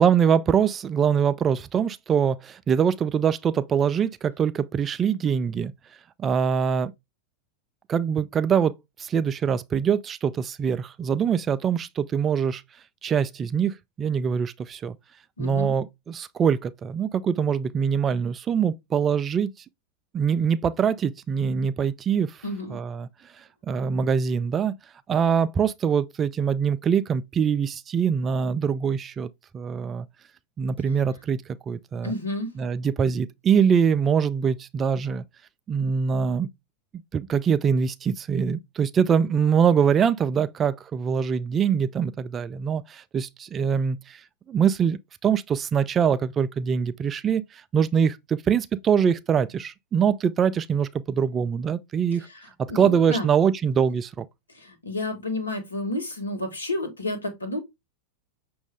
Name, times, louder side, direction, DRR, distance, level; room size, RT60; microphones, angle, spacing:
voice 1, 0.0-5.7 6.2-6.9 7.9-12.6 13.0-15.0 15.4-19.5 20.1-22.4 22.7-23.1 23.6-24.7 25.1-30.1 30.6-32.1 32.6-35.2 35.7-36.5 37.1-44.2 44.5-52.3 52.7-54.3, right 7 dB, 25° right, 0.3 m, -23 dB
voice 2, 15.4-15.7 22.4-22.8 32.0-32.5 52.2-53.3 54.5-57.6, left 1 dB, 75° left, 1.3 m, -31 dB
6.1 x 2.6 x 3.2 m
figure-of-eight pair, 90°, 0 cm